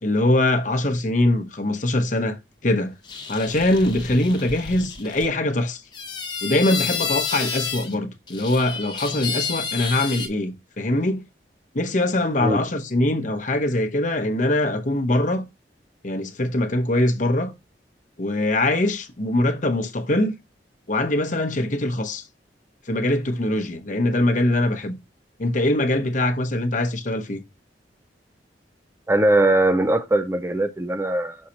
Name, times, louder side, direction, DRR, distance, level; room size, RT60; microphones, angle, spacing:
voice 1, 0.0-2.9 3.3-5.8 6.4-11.2 11.7-15.4 16.0-17.5 18.2-20.4 20.9-22.2 22.9-25.0 25.4-27.4, left 1 dB, 45° left, 0.9 m, -22 dB
sound 1, 3.0-5.3 5.9-7.9 8.3-10.3, left 5 dB, 25° left, 1.0 m, -30 dB
voice 2, 29.1-31.4, right 1 dB, 15° right, 0.5 m, -20 dB
6.3 x 5.5 x 2.9 m
head